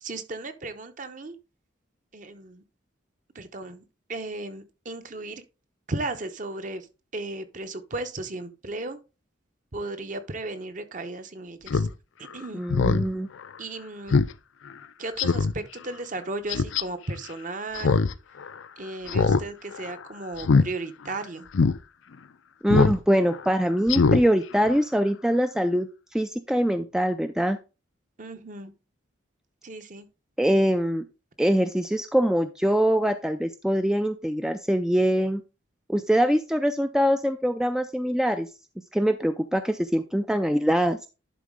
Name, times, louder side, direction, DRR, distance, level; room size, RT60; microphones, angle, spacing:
voice 1, 0.0-1.3 2.1-2.6 3.3-3.8 4.1-5.4 5.9-6.9 7.1-9.0 9.7-11.9 12.3-12.6 13.6-14.2 15.0-18.0 18.8-21.5 28.2-28.7 29.6-30.1, right 2 dB, 40° right, 0.8 m, -35 dB
Speech synthesizer, 11.7-11.9 12.3-12.4 12.7-13.0 13.4-13.5 14.1-14.3 14.7-14.8 15.2-15.5 16.5-16.8 17.7-18.1 18.4-18.5 19.1-19.4 19.7-19.9 20.4-20.7 21.1-21.2 21.5-21.7 22.7-23.0 23.3-23.4 23.9-24.2 24.6-24.7, left 4 dB, 80° left, 0.5 m, -21 dB
voice 2, 12.5-13.3 22.6-25.9 26.1-27.6 30.4-31.0 31.4-35.4 35.9-38.5 38.9-41.0, equal, 5° right, 0.3 m, -23 dB
11.0 x 4.1 x 3.6 m
head